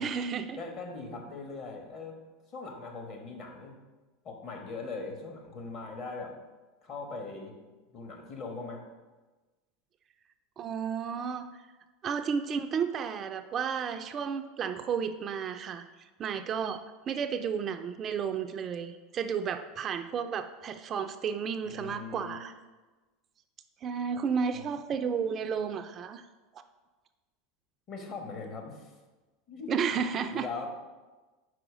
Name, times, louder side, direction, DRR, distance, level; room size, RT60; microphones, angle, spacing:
voice 1, 0.0-0.6 10.6-11.5 12.0-15.8 16.2-22.5 23.8-26.2 29.7-30.5, right 6 dB, 35° right, 8 dB, 0.3 m, -32 dB
voice 2, 0.6-2.1 2.5-3.8 4.2-6.3 6.8-7.5 7.9-8.8 21.6-22.4 24.5-24.7 27.9-28.9 29.5-29.9 30.3-30.7, left 4 dB, 45° left, 3 dB, 1.2 m, -40 dB
4.9 x 4.4 x 4.9 m, 1.2 s
supercardioid pair, 115°, 0 cm